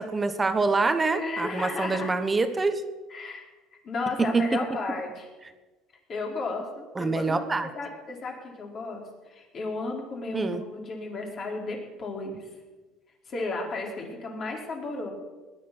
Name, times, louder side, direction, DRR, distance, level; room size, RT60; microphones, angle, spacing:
voice 1, 0.0-2.7 4.2-4.5 6.9-7.7 10.3-10.6, right 3 dB, 15° right, 9 dB, 1.2 m, -25 dB
voice 2, 1.1-2.1 3.1-3.4 3.7-5.3 6.1-7.4 7.7-12.4 13.3-15.1, left 3 dB, 40° left, 0 dB, 4.3 m, -34 dB
19.0 x 11.0 x 6.2 m, 1.2 s
cardioid pair, 125°, 0 cm